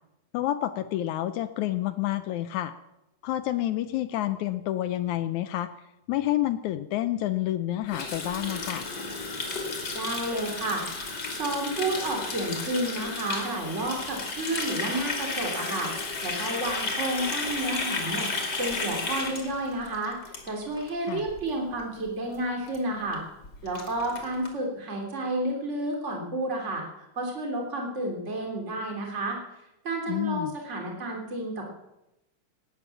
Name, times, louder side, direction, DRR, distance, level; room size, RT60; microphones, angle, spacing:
voice 1, 0.3-2.7 3.2-5.7 6.1-8.8 21.1-21.3 30.1-30.5, left 14 dB, 75° left, 11 dB, 1.8 m, -29 dB
Water tap faucet, 7.9-20.9 21.2-21.4 21.7-22.1 22.3-22.4 22.7-22.8 23.1-23.2 23.4-24.5, left 3 dB, 35° left, 2.8 m, -33 dB
voice 2, 9.9-10.8 11.4-23.2 23.6-26.8 27.1-29.4 29.8-31.7, right 1 dB, 20° right, 1 dB, 3.2 m, -31 dB
18.0 x 10.5 x 7.1 m, 0.92 s
omnidirectional pair, 3.9 m